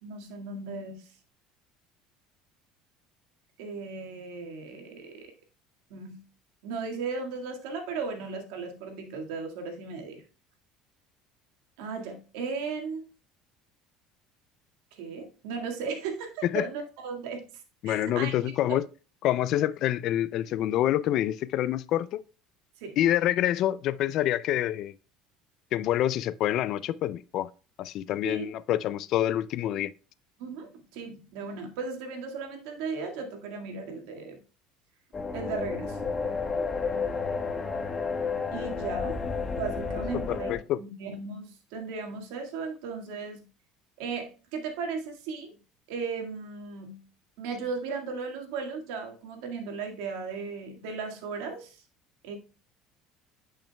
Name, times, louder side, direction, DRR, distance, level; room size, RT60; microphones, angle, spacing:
voice 1, 0.0-1.1 3.6-5.3 5.9-6.2 6.6-10.2 11.8-13.0 14.9-17.5 17.9-18.4 18.7-18.8 22.8-23.0 28.1-28.5 30.4-34.4 35.3-36.0 38.5-39.2 39.5-43.4 44.0-45.6 45.9-47.0 47.4-51.8 52.2-52.4, right 4 dB, 80° right, 1.9 m, -36 dB
voice 2, 17.8-18.8 19.2-22.2 23.0-24.9 25.7-27.5 27.8-29.9 40.3-40.8, left 12 dB, 60° left, 0.4 m, -27 dB
sound 1, 35.1-40.6, left 5 dB, 30° left, 1.2 m, -31 dB
10.5 x 5.5 x 2.3 m
supercardioid pair, 95°, 0 cm